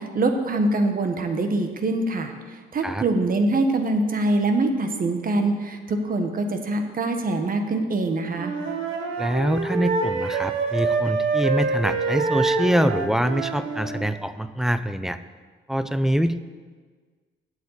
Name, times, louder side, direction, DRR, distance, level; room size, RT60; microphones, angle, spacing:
voice 1, 0.0-8.5, right 2 dB, 45° right, 6 dB, 1.4 m, -24 dB
Wind instrument woodwind instrument, 8.3-14.0, right 4 dB, 85° right, 1.5 m, -26 dB
voice 2, 9.2-15.2 15.7-16.5, equal, ahead, 12 dB, 0.5 m, -24 dB
8.1 x 7.3 x 8.2 m, 1.5 s
cardioid pair, 90°, 20 cm